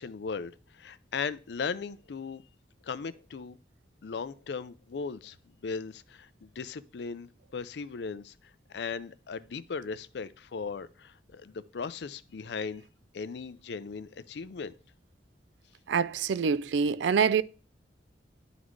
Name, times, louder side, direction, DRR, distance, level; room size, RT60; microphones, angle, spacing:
voice 1, 0.0-2.4 2.8-3.6 4.0-8.3 8.7-12.8 13.1-14.7, left 5 dB, 70° left, 0.4 m, -37 dB
voice 2, 15.9-17.4, right 6 dB, 85° right, 0.4 m, -25 dB
11.0 x 4.1 x 3.1 m
head